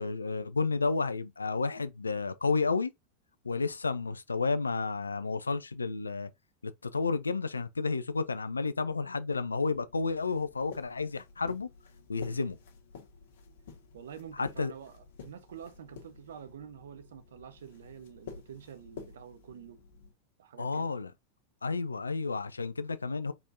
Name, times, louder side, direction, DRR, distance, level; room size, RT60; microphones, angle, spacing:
voice 1, 0.0-2.9 3.4-6.3 6.6-11.7 12.1-12.6 14.4-14.7 20.6-21.1 21.6-23.3, left 4 dB, 80° left, 0.5 m, -31 dB
sound 1, 9.7-20.1, left 5 dB, 60° left, 1.5 m, -51 dB
voice 2, 12.2-12.6 13.9-19.8 20.4-20.9, right 8 dB, 65° right, 0.8 m, -48 dB
4.4 x 4.2 x 2.6 m
figure-of-eight pair, 90°, 0 cm